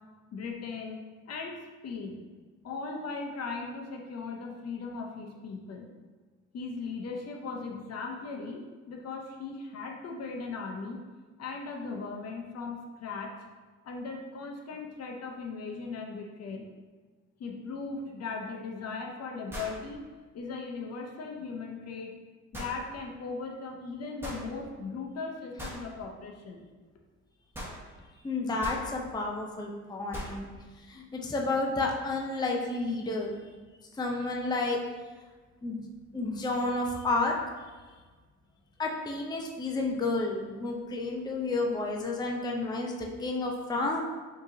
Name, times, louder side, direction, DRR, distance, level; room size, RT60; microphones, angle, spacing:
voice 1, 0.3-2.2 2.6-5.9 6.5-8.6 8.9-11.0 11.4-13.3 13.8-16.7 17.4-20.0 20.3-22.1 22.5-26.6, left 4 dB, 55° left, 1 dB, 0.7 m, -38 dB
sound 1, 18.3-18.4 19.5-19.8 22.5-22.8 24.2-24.4 25.6-25.8 27.5-27.8 28.6-28.9 30.1-30.4, equal, 5° right, 1.1 m, -39 dB
voice 2, 28.2-30.5 30.9-33.4 34.0-34.8 35.6-35.8 36.1-37.4 38.8-44.0, left 2 dB, 15° left, 0 dB, 0.5 m, -31 dB
5.2 x 2.9 x 2.7 m, 1.4 s
cardioid pair, 90°, 30 cm